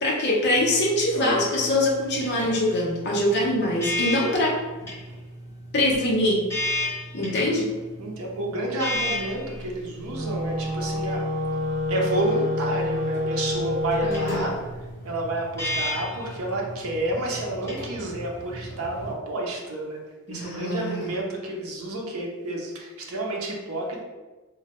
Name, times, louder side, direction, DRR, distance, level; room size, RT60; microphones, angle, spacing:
voice 1, 0.0-4.5 5.7-6.4 7.1-7.7 14.0-14.4 20.3-21.1, left 1 dB, 50° left, -3 dB, 0.7 m, -23 dB
sound 1, 0.5-19.1, left 1 dB, 10° left, 1.1 m, -34 dB
voice 2, 8.0-11.3 11.9-14.6 15.0-24.0, right 1 dB, 80° right, -1 dB, 0.6 m, -30 dB
Wind instrument woodwind instrument, 10.0-14.5, left 1 dB, 35° right, 0.6 m, -28 dB
3.1 x 2.2 x 2.9 m, 1.2 s
head